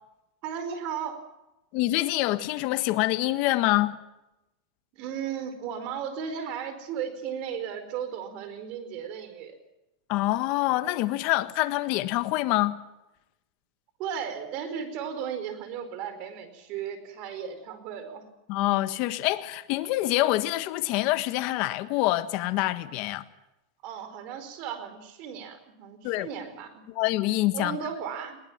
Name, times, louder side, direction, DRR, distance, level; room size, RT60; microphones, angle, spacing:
voice 1, 0.4-1.2 4.9-9.5 14.0-18.3 23.8-26.8 27.5-28.4, right 8 dB, 45° right, 4.6 m, -35 dB
voice 2, 1.7-3.9 10.1-12.8 18.5-23.2 26.0-26.3 26.9-27.8, left 17 dB, 50° left, 1.5 m, -26 dB
21.5 x 19.0 x 7.4 m
supercardioid pair, 140°, 3 cm